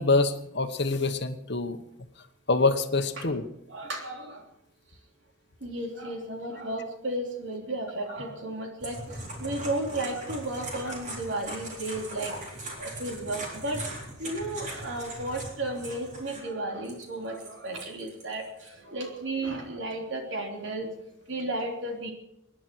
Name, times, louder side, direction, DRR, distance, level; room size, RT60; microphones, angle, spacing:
voice 1, 0.0-1.8 2.5-3.4, left 3 dB, 55° left, 9 dB, 1.2 m, -25 dB
voice 2, 3.7-4.4 5.6-9.0 9.4-12.3 12.8-13.8 14.2-20.9 21.3-22.1, right 2 dB, 65° right, 2 dB, 3.4 m, -33 dB
sound 1, 8.8-16.4 16.8-18.7, right 1 dB, 35° right, 3.9 m, -39 dB
25.5 x 10.5 x 4.6 m, 0.85 s
head